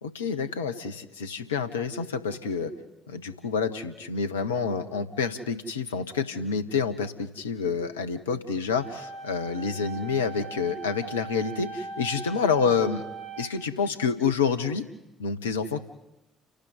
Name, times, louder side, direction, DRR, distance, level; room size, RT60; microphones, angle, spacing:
voice 1, 0.0-2.7 3.1-13.1 13.4-14.9 15.2-15.8, left 5 dB, 80° left, 10 dB, 1.2 m, -28 dB
sound 1, 8.8-13.8, right 5 dB, 60° right, 3.7 m, -40 dB
30.0 x 12.0 x 9.4 m, 1.0 s
figure-of-eight pair, 45°, 0 cm